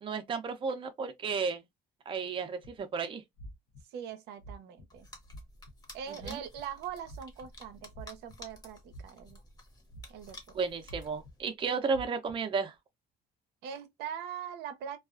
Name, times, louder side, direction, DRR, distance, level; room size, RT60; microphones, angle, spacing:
voice 1, 0.0-1.6 2.1-3.2 6.1-6.4 10.5-12.7, right 5 dB, 30° right, 0.5 m, -33 dB
sound 1, 2.6-2.8 3.4-3.8 4.4-4.9 5.3-5.7 6.2-6.6 7.0-7.5 7.9-8.6 8.9-9.3 9.9-10.3 10.9-11.3 11.9-12.4, right 1 dB, 65° left, 0.6 m, -47 dB
voice 2, 3.9-5.1 5.9-9.4 10.1-10.6 13.6-15.0, right 8 dB, 80° right, 0.6 m, -42 dB
sound 2, 4.9-11.5, left 2 dB, 25° left, 0.9 m, -53 dB
2.3 x 2.2 x 2.4 m
cardioid pair, 110°, 17 cm